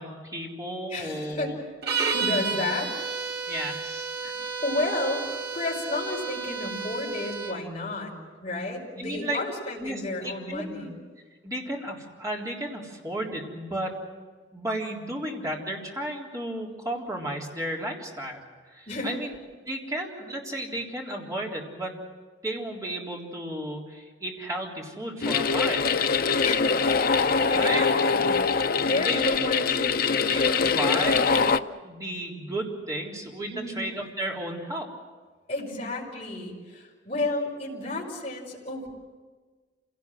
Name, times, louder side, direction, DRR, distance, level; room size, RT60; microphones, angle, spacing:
voice 1, 0.0-1.6 3.5-4.2 9.0-9.4 9.8-10.9 11.4-14.0 14.5-18.4 18.7-19.4 19.7-22.0 22.4-26.0 27.5-27.8 29.0-31.5 31.8-34.9, right 1 dB, 20° right, -2 dB, 3.7 m, -33 dB
voice 2, 0.9-1.5 2.1-2.9 4.2-4.3 4.6-5.3 5.5-8.1 8.4-10.9 18.9-19.2 26.4-26.9 27.5-28.4 28.8-29.8 33.5-33.8 35.5-38.9, left 2 dB, 35° left, -4 dB, 5.2 m, -31 dB
sound 1, 1.8-7.6, right 5 dB, 60° right, 1.9 m, -31 dB
sound 2, 25.2-31.6, left 5 dB, 50° left, 0.6 m, -23 dB
27.0 x 17.5 x 7.8 m, 1.4 s
head